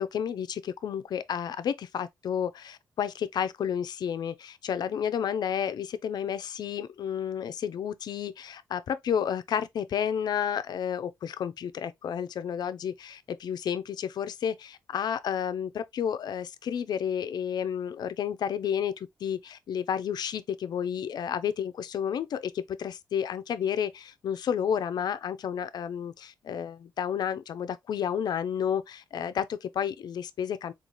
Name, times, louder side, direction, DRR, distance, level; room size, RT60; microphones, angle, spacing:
voice 1, 0.0-30.7, left 8 dB, 70° left, 0.4 m, -31 dB
3.9 x 2.4 x 3.0 m
cardioid pair, 90°, 7 cm